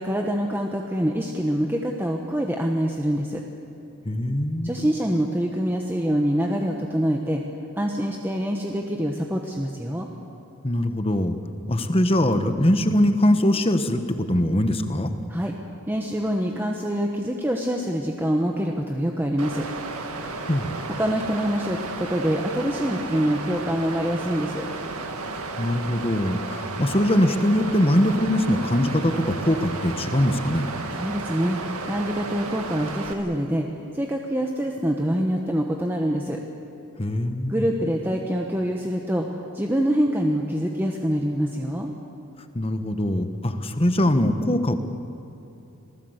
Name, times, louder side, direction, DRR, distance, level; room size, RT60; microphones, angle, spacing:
voice 1, 0.0-3.4 4.6-7.4 7.8-10.1 15.3-15.5 15.9-19.7 21.0-24.6 30.9-36.4 37.5-41.9, equal, 10° right, 1 dB, 1.2 m, -25 dB
voice 2, 4.0-4.7 10.6-11.4 11.7-15.1 20.5-20.7 25.6-30.7 37.0-37.7 42.5-44.7, left 1 dB, 25° left, 8 dB, 1.3 m, -22 dB
Water, 19.4-33.1, right 3 dB, 85° right, 2.1 m, -33 dB
27.0 x 19.0 x 8.1 m, 2.9 s
head